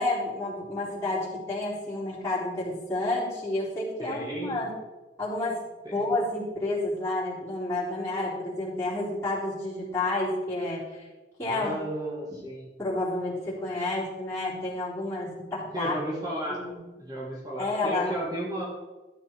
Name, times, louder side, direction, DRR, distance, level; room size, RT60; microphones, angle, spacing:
voice 1, 0.0-4.7 5.2-5.6 5.9-11.1 11.4-11.8 12.3-12.4 12.8-15.9 16.5-16.8 17.6-18.2, left 2 dB, 15° left, -9 dB, 3.9 m, -30 dB
voice 2, 4.0-4.6 5.9-6.0 11.5-12.7 15.7-16.6 17.0-18.6, right 1 dB, 20° right, -4 dB, 1.8 m, -34 dB
12.5 x 7.8 x 4.5 m, 1.2 s
head